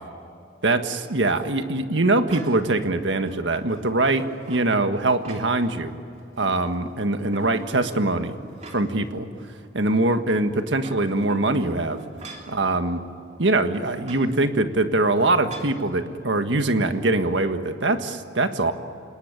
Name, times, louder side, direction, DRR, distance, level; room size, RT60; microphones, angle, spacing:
voice 1, 0.6-5.9 6.4-8.4 8.7-9.3 9.7-12.0 12.5-13.0 13.4-18.7, right 2 dB, 85° right, 8 dB, 1.6 m, -23 dB
sound 1, 2.3-2.7 3.2-4.7 5.1-5.8 6.2-6.9 7.3-9.1 9.5-9.6 10.6-12.6 14.0-14.3 15.5-15.8, right 2 dB, 40° right, 3.1 m, -43 dB
28.5 x 19.0 x 9.0 m, 2.8 s
head